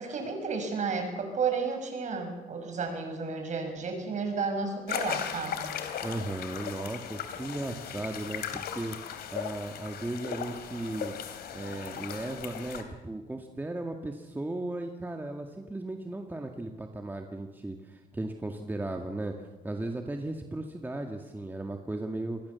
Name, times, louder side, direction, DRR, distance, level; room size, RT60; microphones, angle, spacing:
voice 1, 0.0-5.7, right 5 dB, 45° right, 5 dB, 6.7 m, -32 dB
sound 1, 4.9-12.8, left 8 dB, 65° left, 3.2 m, -37 dB
voice 2, 6.0-11.1 11.5-22.4, right 2 dB, 10° right, 3 dB, 1.9 m, -36 dB
26.5 x 20.0 x 7.1 m, 1.2 s
cardioid pair, 110°, 17 cm